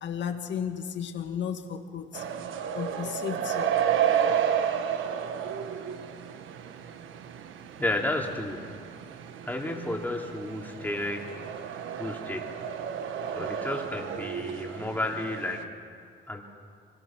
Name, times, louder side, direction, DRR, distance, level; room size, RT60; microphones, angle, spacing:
voice 1, 0.0-2.2 2.7-3.7, left 8 dB, 65° left, 5 dB, 2.0 m, -34 dB
sound 1, 2.1-15.6, right 8 dB, 80° right, 1.3 m, -32 dB
voice 2, 7.8-8.7 9.4-11.3 12.0-12.5 13.3-15.7 16.3-16.4, left 1 dB, 10° left, 0 dB, 3.3 m, -32 dB
25.0 x 20.5 x 6.0 m, 2.2 s
cardioid pair, 90°, 20 cm